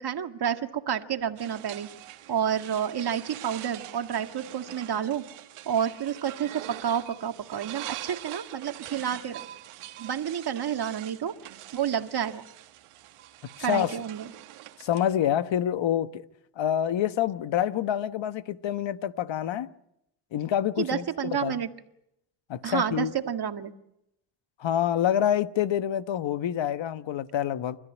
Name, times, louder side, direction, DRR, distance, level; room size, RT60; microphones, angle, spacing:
voice 1, 0.0-1.9 2.3-5.2 5.7-9.5 10.0-11.4 11.7-12.4 13.6-14.3 20.8-21.7 22.6-23.7, right 8 dB, 50° right, 1.9 m, -29 dB
sound 1, 1.4-15.1, right 13 dB, 90° right, 1.6 m, -44 dB
voice 2, 13.6-13.9 14.8-16.2 16.6-19.7 20.3-21.0 21.4-21.5 22.5-23.1 24.6-27.8, left 10 dB, 60° left, 1.3 m, -27 dB
29.0 x 14.0 x 9.8 m
cardioid pair, 80°, 50 cm